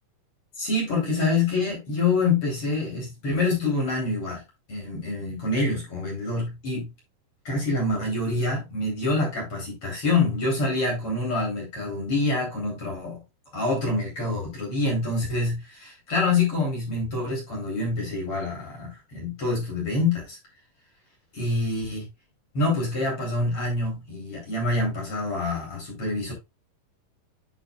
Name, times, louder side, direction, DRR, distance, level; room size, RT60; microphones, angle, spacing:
voice 1, 0.6-4.4 4.7-6.9 7.5-13.2 13.5-20.4 21.3-22.1 22.5-26.3, left 3 dB, 40° left, 4.0 m, -26 dB
8.9 x 6.1 x 2.3 m
omnidirectional pair, 4.2 m